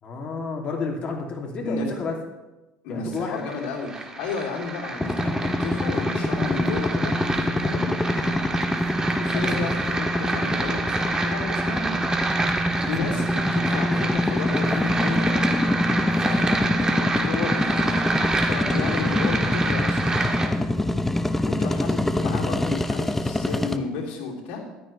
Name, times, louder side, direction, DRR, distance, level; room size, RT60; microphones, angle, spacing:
voice 1, 0.0-2.1 2.9-3.5 9.3-9.7 16.2-16.5, left 4 dB, 40° left, 0 dB, 3.0 m, -31 dB
voice 2, 2.8-7.1 7.6-7.9 9.2-11.9 12.9-15.4 16.7-18.0 18.5-20.2 21.4-24.6, left 4 dB, 75° left, -2 dB, 3.4 m, -32 dB
sound 1, 3.1-20.5, right 3 dB, 25° right, 1.9 m, -28 dB
sound 2, 5.0-23.8, left 1 dB, 10° left, 0.8 m, -25 dB
14.0 x 12.0 x 3.4 m, 1.1 s
supercardioid pair, 95°, 3 cm